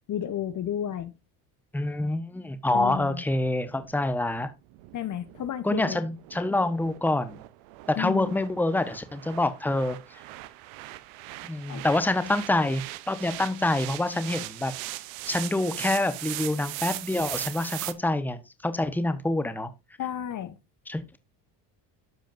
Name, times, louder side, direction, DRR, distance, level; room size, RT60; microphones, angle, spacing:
voice 1, 0.1-1.1 2.7-3.2 4.9-6.0 8.0-8.4 11.7-11.8 20.0-20.6, left 10 dB, 40° left, 0.8 m, -32 dB
voice 2, 1.7-4.5 5.6-7.4 7.9-10.0 11.4-14.7 15.3-19.7 20.9-21.2, left 2 dB, 5° left, 1.0 m, -26 dB
sound 1, 3.2-17.9, right 18 dB, 90° right, 0.8 m, -40 dB
13.0 x 5.0 x 2.5 m
cardioid pair, 100°, 45 cm